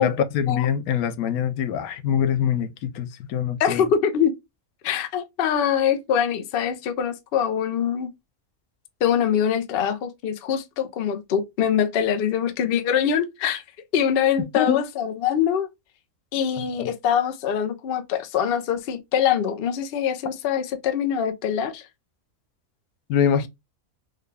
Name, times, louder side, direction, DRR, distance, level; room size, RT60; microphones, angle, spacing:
voice 1, 0.0-3.8 14.6-14.8 16.6-16.9 23.1-23.5, left 8 dB, 85° left, 1.1 m, -24 dB
voice 2, 3.6-4.3 4.8-8.1 9.0-13.6 13.9-15.7 16.3-21.9, left 8 dB, 60° left, 0.6 m, -23 dB
3.8 x 2.2 x 3.2 m
omnidirectional pair, 1.5 m